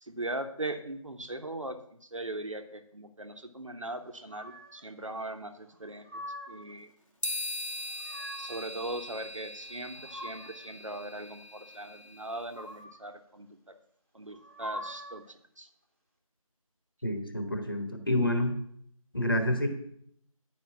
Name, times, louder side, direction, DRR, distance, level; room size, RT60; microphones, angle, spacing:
voice 1, 0.0-6.2 6.5-6.9 8.4-13.5 14.1-15.7, right 1 dB, 60° right, 7 dB, 1.0 m, -39 dB
sound 1, 4.3-4.9 5.7-6.7 7.7-8.7 9.6-10.7 12.3-13.1 14.3-15.3, equal, 25° right, 1.2 m, -44 dB
sound 2, 7.2-12.5, left 1 dB, 60° left, 1.1 m, -40 dB
voice 2, 17.0-18.5 19.1-19.7, left 1 dB, 40° left, 5 dB, 1.3 m, -28 dB
9.4 x 5.0 x 5.9 m, 0.67 s
figure-of-eight pair, 175°, 19 cm